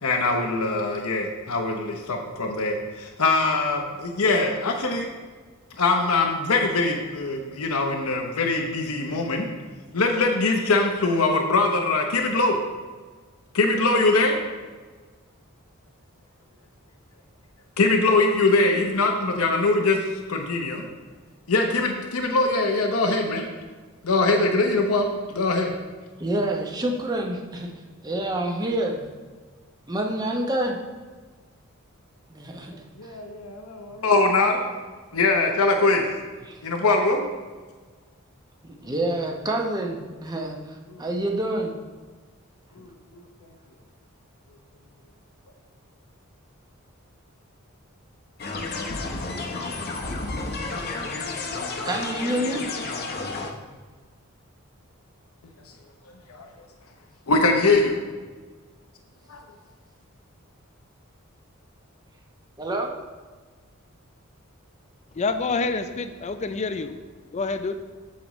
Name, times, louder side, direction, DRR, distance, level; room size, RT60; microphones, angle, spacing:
voice 1, 0.0-5.1 5.8-9.5 9.9-12.6 13.5-14.4 17.8-20.0 20.3-20.8 21.5-23.5 24.0-25.7 33.0-34.6 35.1-36.1 36.6-37.3 40.9-41.0 42.8-43.2 56.3-56.5 57.3-58.0 59.3-59.4, left 3 dB, 85° left, 3 dB, 0.8 m, -22 dB
voice 2, 26.2-27.7 28.0-29.1 29.9-30.8 32.3-32.8 36.4-36.6 38.6-41.7 51.8-52.6 62.6-62.9, right 1 dB, 20° right, 1 dB, 0.8 m, -27 dB
sound 1, 48.4-53.5, left 3 dB, 45° left, 0.8 m, -31 dB
voice 3, 65.2-66.9 67.3-67.8, left 3 dB, 30° left, 9 dB, 0.4 m, -27 dB
8.5 x 7.4 x 3.1 m, 1.4 s
head